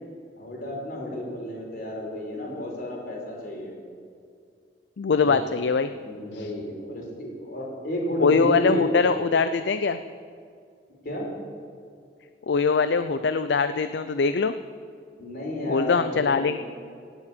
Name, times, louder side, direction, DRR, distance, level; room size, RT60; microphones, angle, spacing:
voice 1, 0.4-3.8 5.2-5.4 6.0-9.0 11.0-11.3 15.2-16.6, equal, 55° left, -1 dB, 4.1 m, -32 dB
voice 2, 5.0-5.9 6.3-6.5 8.2-10.0 12.5-14.5 15.7-16.6, left 5 dB, 70° left, 11 dB, 0.5 m, -22 dB
17.0 x 7.2 x 8.6 m, 2.3 s
head